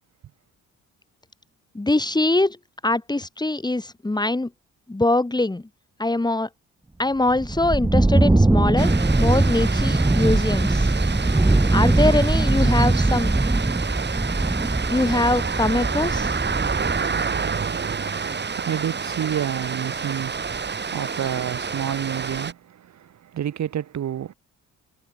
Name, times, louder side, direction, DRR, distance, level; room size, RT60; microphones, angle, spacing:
voice 1, 1.7-2.6 2.8-4.5 4.9-5.6 6.0-6.5 7.0-10.9 11.7-13.4 14.9-16.3, left 2 dB, 15° left, 4.3 m, -23 dB
sound 1, 7.3-17.0, right 2 dB, 10° right, 1.6 m, -21 dB
sound 2, 8.8-22.5, right 5 dB, 35° right, 4.0 m, -29 dB
voice 2, 18.3-24.3, right 10 dB, 65° right, 5.0 m, -29 dB
cardioid pair, 90°, 30 cm